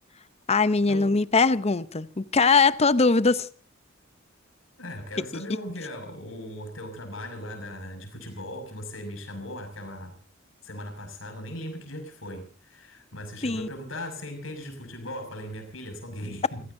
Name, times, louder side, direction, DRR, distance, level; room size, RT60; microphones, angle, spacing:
voice 1, 0.5-3.5 5.3-5.4 13.4-13.7, left 4 dB, 30° left, 0.7 m, -21 dB
voice 2, 4.8-10.1 10.6-16.6, left 1 dB, 75° left, 6.3 m, -38 dB
29.0 x 16.0 x 2.7 m
head